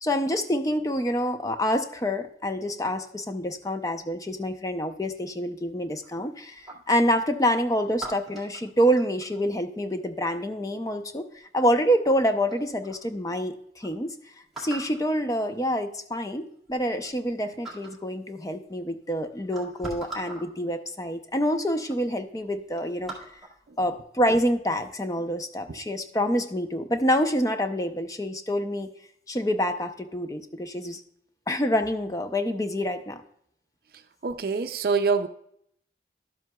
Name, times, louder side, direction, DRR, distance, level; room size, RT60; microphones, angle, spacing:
voice 1, 0.0-14.2 14.6-23.2 23.8-28.9 29.3-31.0 31.5-33.2, equal, 20° left, 0.6 m, -27 dB
sound 1, 6.0-7.0 8.0-9.4 11.1-11.5 12.1-12.2 12.5-13.0 13.5-13.6 13.8-13.9 14.5-15.0 16.0-16.1 16.5-17.3 17.6-18.0 18.9-19.0 19.4-20.5 21.3-21.4 21.8-22.0 22.4-23.6 24.1-24.4, right 2 dB, ahead, 1.8 m, -42 dB
voice 2, 34.2-35.3, right 5 dB, 55° right, 0.5 m, -25 dB
12.0 x 7.7 x 2.3 m
head